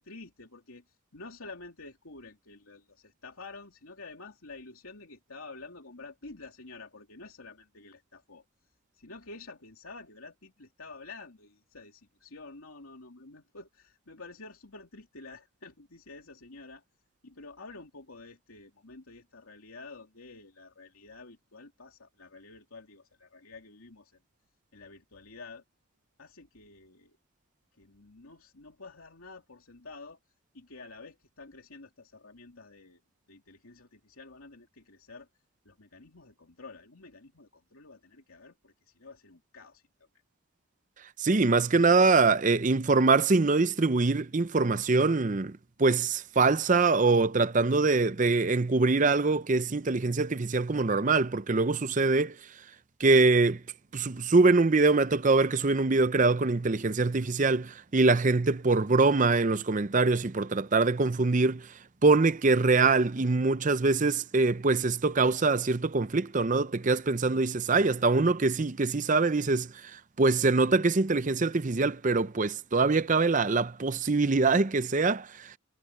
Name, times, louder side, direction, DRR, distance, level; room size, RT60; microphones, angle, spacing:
voice 1, 0.0-8.4 8.9-16.8 17.2-24.2 24.7-25.6 26.2-27.2 27.7-30.2 30.5-33.0 33.3-35.3 35.6-39.9, left 3 dB, 85° left, 2.9 m, -49 dB
voice 2, 41.2-52.4 53.0-53.6 53.9-61.7 62.0-75.5, right 3 dB, 35° right, 0.6 m, -24 dB
head